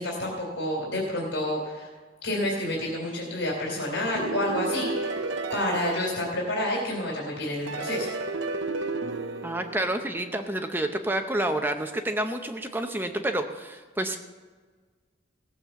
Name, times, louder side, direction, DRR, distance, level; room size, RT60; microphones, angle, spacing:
voice 1, 0.0-1.9 2.2-5.2 5.5-8.1, left 1 dB, 80° left, -2 dB, 3.3 m, -29 dB
sound 1, 4.2-7.0 7.7-10.5, right 3 dB, 80° right, 0.8 m, -33 dB
voice 2, 9.4-14.2, right 1 dB, 10° right, 6 dB, 0.6 m, -29 dB
17.5 x 7.4 x 6.9 m, 1.4 s
head